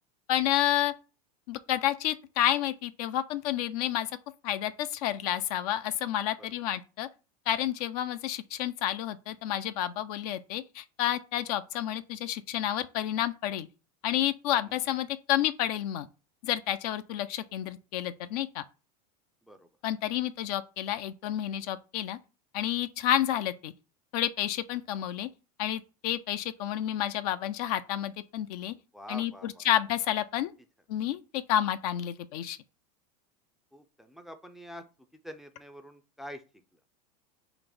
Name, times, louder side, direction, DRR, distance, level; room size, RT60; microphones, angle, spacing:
voice 1, 0.3-0.9 1.5-4.1 4.4-7.1 7.5-13.7 14.0-16.1 16.4-18.6 19.8-22.2 22.5-23.7 24.1-25.3 25.6-28.7 29.1-30.5 30.9-32.6, left 12 dB, 65° left, 0.5 m, -30 dB
voice 2, 28.9-29.7 33.7-34.8 35.2-36.4, equal, ahead, 0.3 m, -45 dB
3.9 x 2.5 x 3.4 m
supercardioid pair, 115°, 21 cm